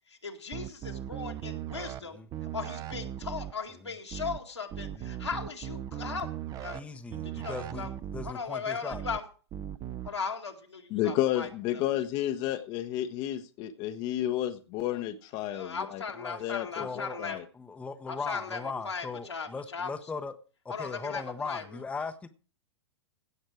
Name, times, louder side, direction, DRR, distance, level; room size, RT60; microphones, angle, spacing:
voice 1, 0.1-2.2 2.5-6.3 6.6-6.8 7.1-7.9 8.2-9.2 10.0-11.8 15.5-17.4 18.1-19.9 20.7-21.8, left 5 dB, 80° left, 2.0 m, -38 dB
sound 1, 0.5-2.0 2.3-3.5 4.1-4.4 4.7-6.8 7.1-8.3 8.9-9.2 9.5-10.1, right 11 dB, 25° right, 0.7 m, -38 dB
voice 2, 6.7-7.9 8.1-9.0 16.2-16.4 16.8-17.2 17.6-20.4 20.6-22.3, left 4 dB, 10° left, 0.9 m, -38 dB
voice 3, 10.9-16.0 16.4-16.9 17.2-17.4, left 12 dB, 35° left, 0.9 m, -31 dB
16.5 x 6.5 x 4.8 m
figure-of-eight pair, 100°, 14 cm